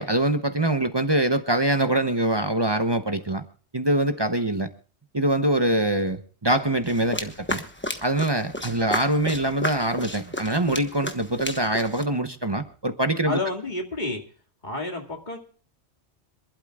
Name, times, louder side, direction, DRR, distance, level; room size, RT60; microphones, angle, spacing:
voice 1, 0.0-3.4 3.7-4.7 5.1-7.6 8.0-13.4, right 1 dB, 25° right, 8 dB, 0.8 m, -24 dB
sound 1, 6.9-12.0, left 1 dB, 10° left, 1.1 m, -33 dB
voice 2, 13.2-14.2 14.6-15.4, left 2 dB, 40° left, 2 dB, 2.4 m, -30 dB
26.5 x 12.0 x 2.4 m, 0.42 s
omnidirectional pair, 1.2 m